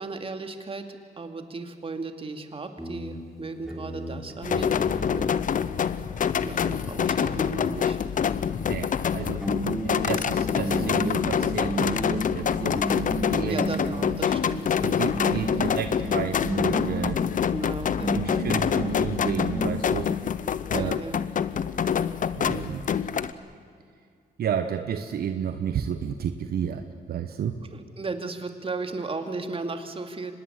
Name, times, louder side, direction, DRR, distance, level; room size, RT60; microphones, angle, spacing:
voice 1, 0.0-4.7 5.1-5.3 6.4-8.0 13.5-15.0 17.5-18.2 20.7-21.2 27.7-30.3, right 3 dB, 35° right, 7 dB, 2.5 m, -35 dB
sound 1, 2.8-5.4 9.0-9.1 9.4-14.5 15.1-17.4 18.0-19.8, right 1 dB, ahead, 4.9 m, -33 dB
sound 2, 4.4-23.3, left 7 dB, 55° left, 0.9 m, -26 dB
voice 2, 8.7-9.5 9.8-12.9 13.3-13.7 14.8-17.2 18.1-20.1 20.7-21.0 22.3-22.8 24.4-27.6, right 8 dB, 70° right, 8 dB, 1.2 m, -31 dB
25.0 x 20.0 x 8.2 m, 2.3 s
cardioid pair, 85°, 17 cm